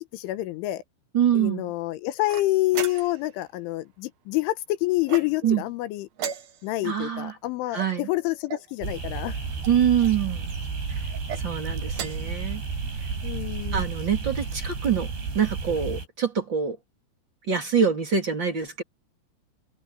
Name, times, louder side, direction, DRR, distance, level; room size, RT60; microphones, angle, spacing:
voice 1, 0.1-0.8 1.3-6.1 6.6-9.4 13.2-13.8, left 18 dB, 85° left, 3.5 m, -27 dB
voice 2, 1.1-1.7 5.4-5.6 6.8-7.4 7.7-8.1 9.7-10.5 10.9-11.0 11.4-12.6 13.7-15.1 15.3-16.8 17.5-18.8, right 8 dB, 30° right, 2.8 m, -25 dB
sound 1, 2.3-3.3 5.0-5.6 6.1-6.9 7.8-8.7 9.6-10.2 11.1-11.4 11.9-12.4, right 8 dB, 90° right, 1.5 m, -36 dB
sound 2, 8.8-16.1, right 5 dB, 60° right, 7.9 m, -32 dB
open air
omnidirectional pair, 5.5 m